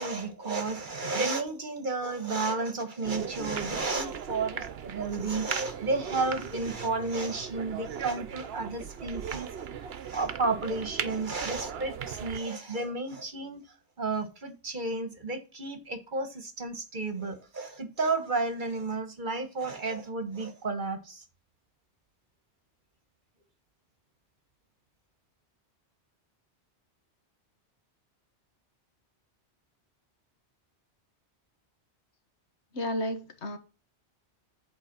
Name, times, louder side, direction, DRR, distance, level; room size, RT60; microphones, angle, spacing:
voice 1, 0.0-9.7 10.0-13.6 14.0-21.2, right 3 dB, 45° right, 1.4 m, -32 dB
sound 1, 3.0-12.4, right 8 dB, 65° right, 1.0 m, -38 dB
voice 2, 32.7-33.6, left 1 dB, 70° left, 1.6 m, -32 dB
8.1 x 4.7 x 5.9 m
omnidirectional pair, 1.2 m